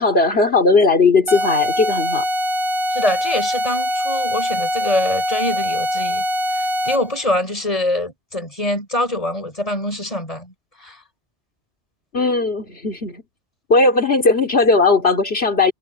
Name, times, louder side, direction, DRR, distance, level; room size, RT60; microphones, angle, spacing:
voice 1, 0.0-2.3 12.1-13.2 13.7-15.7, left 3 dB, 70° left, 2.9 m, -17 dB
sound 1, 1.3-7.2, equal, 30° right, 0.8 m, -22 dB
voice 2, 2.9-6.2 6.5-11.0, left 1 dB, 35° left, 5.6 m, -24 dB
omnidirectional pair, 1.1 m